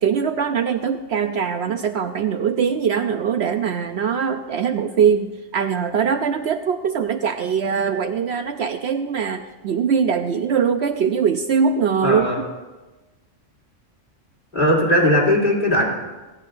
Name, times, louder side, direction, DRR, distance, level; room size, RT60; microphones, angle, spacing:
voice 1, 0.0-12.3, right 7 dB, 65° right, 7 dB, 0.8 m, -22 dB
voice 2, 12.0-12.4 14.5-15.8, left 1 dB, 40° left, -4 dB, 3.1 m, -18 dB
27.5 x 9.8 x 2.6 m, 1.2 s
omnidirectional pair, 1.3 m